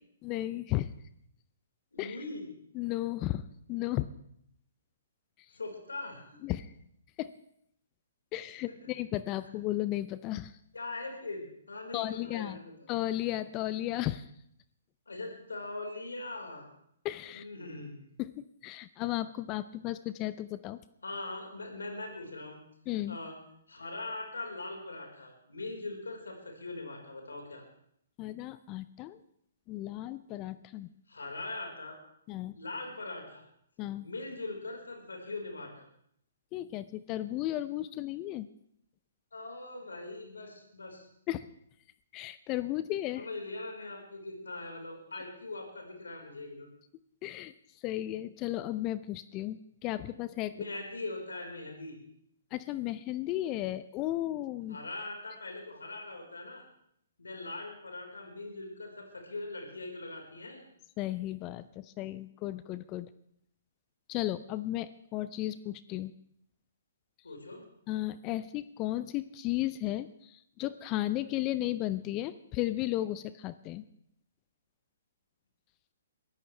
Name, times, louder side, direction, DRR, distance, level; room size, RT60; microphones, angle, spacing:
voice 1, 0.2-0.9 2.0-2.2 2.8-3.4 3.7-4.1 6.4-6.7 7.2-7.3 8.3-10.5 11.9-12.6 12.9-14.3 17.0-17.5 18.2-20.8 22.9-23.2 28.2-29.2 29.7-30.9 32.3-32.6 33.8-34.1 36.5-38.5 41.3-41.5 42.1-43.3 47.2-47.5 47.8-50.5 52.5-54.8 61.0-63.1 64.1-66.1 67.9-73.9, left 15 dB, 30° left, 15 dB, 0.5 m, -34 dB
voice 2, 1.9-2.5 5.5-6.4 10.7-12.7 15.1-16.7 17.3-18.0 21.0-22.6 23.1-23.3 23.7-27.6 31.1-32.0 32.5-33.4 34.0-35.9 39.3-41.1 43.2-46.7 50.5-52.0 54.7-56.6 57.2-60.6 67.2-67.6, left 2 dB, 85° left, 1 dB, 4.5 m, -41 dB
22.5 x 14.0 x 3.3 m, 0.71 s
hypercardioid pair, 135°, 0 cm